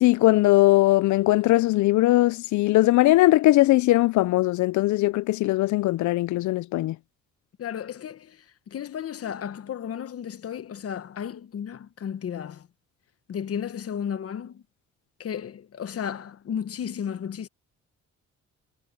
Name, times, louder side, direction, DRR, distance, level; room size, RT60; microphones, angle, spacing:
voice 1, 0.0-7.0, left 17 dB, 75° left, 0.5 m, -20 dB
voice 2, 7.6-12.7 13.3-14.6 15.2-17.5, left 8 dB, 50° left, 1.1 m, -34 dB
cardioid pair, 90°, 30 cm